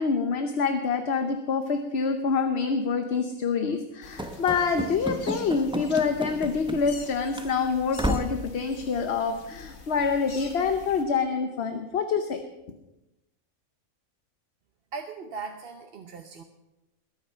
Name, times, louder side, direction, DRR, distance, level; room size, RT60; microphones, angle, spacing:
voice 1, 0.0-12.4, left 5 dB, 50° left, 7 dB, 1.1 m, -26 dB
sound 1, 4.0-11.0, left 4 dB, 75° left, 1.9 m, -46 dB
Run / Slam, 4.2-7.1 7.3-7.5 8.0-8.5, equal, 5° right, 0.5 m, -32 dB
voice 2, 14.9-16.4, right 5 dB, 50° right, 5 dB, 1.0 m, -38 dB
21.5 x 8.9 x 5.6 m, 0.97 s
omnidirectional pair, 1.5 m